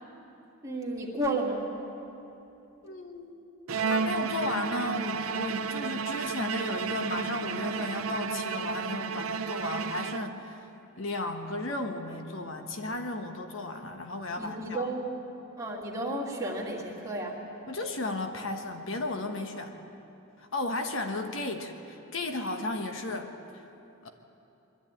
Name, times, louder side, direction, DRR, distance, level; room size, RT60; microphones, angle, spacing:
voice 1, 0.6-1.6 14.4-15.0 15.6-17.4, right 1 dB, 15° right, -3 dB, 2.6 m, -32 dB
voice 2, 2.8-3.3 3.8-10.7 11.0-14.9 17.7-19.7 20.4-23.6 24.0-24.1, left 2 dB, 70° left, 5 dB, 1.3 m, -34 dB
Bowed string instrument, 3.7-10.6, right 5 dB, 85° right, 0.7 m, -32 dB
22.5 x 13.0 x 9.0 m, 2.9 s
head